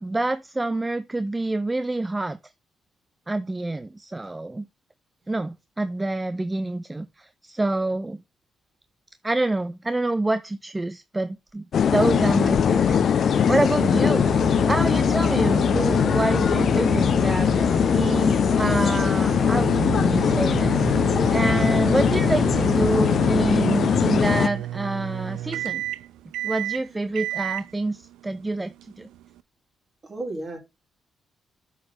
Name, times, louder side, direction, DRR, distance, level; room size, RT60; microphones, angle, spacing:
voice 1, 0.0-2.4 3.3-4.7 5.3-8.2 9.2-14.3 14.7-25.8 26.4-29.1, right 2 dB, 20° right, 0.5 m, -27 dB
sound 1, 11.7-24.5, left 7 dB, 65° left, 0.6 m, -21 dB
sound 2, 14.2-23.6, right 8 dB, 65° right, 0.8 m, -33 dB
sound 3, 19.1-29.4, right 14 dB, 85° right, 0.3 m, -32 dB
voice 2, 30.0-30.6, right 2 dB, 40° right, 3.8 m, -33 dB
8.0 x 4.9 x 3.4 m
supercardioid pair, 60°, 0 cm